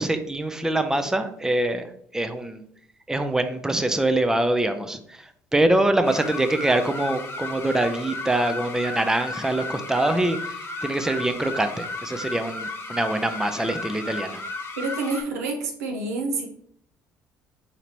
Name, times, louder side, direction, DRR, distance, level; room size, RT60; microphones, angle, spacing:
voice 1, 0.0-1.9 2.1-2.6 3.1-14.4, right 1 dB, 5° right, 8 dB, 0.5 m, -24 dB
sound 1, 6.0-15.2, left 3 dB, 30° left, 1.2 m, -34 dB
voice 2, 14.8-16.5, right 3 dB, 90° right, 3 dB, 0.7 m, -28 dB
3.9 x 2.8 x 4.5 m, 0.64 s
hypercardioid pair, 60°, 8 cm